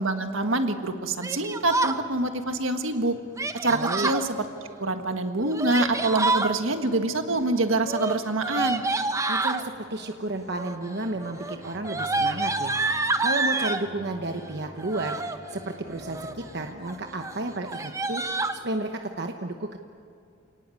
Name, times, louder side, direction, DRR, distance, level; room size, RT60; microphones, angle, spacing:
voice 1, 0.0-3.1 3.6-4.4 4.8-8.8, right 2 dB, 75° right, 7 dB, 1.6 m, -26 dB
Yell, 1.2-2.0 3.4-4.2 5.4-6.5 7.8-9.6 10.5-10.9 11.2-13.9 14.8-15.4 15.9-16.4 16.8-17.0 17.2-17.3 17.7-18.6, right 2 dB, 15° right, 0.8 m, -27 dB
sound 1, 1.6-18.7, equal, 35° left, 6.5 m, -49 dB
voice 2, 3.7-4.1 9.3-15.2 15.5-19.8, right 2 dB, 55° right, 5 dB, 1.1 m, -32 dB
28.5 x 19.0 x 8.5 m, 2.4 s
head